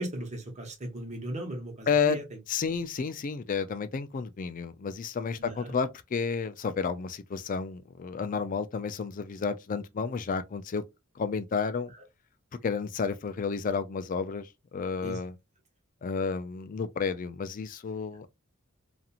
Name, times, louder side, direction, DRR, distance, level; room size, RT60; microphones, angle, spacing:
voice 1, 0.0-2.2 5.4-5.7 15.0-15.2, right 1 dB, 35° right, 1.0 m, -37 dB
voice 2, 1.9-2.2 2.5-10.8 11.2-11.9 12.6-15.4 16.0-18.3, left 5 dB, 40° left, 0.4 m, -31 dB
2.9 x 2.5 x 2.4 m
head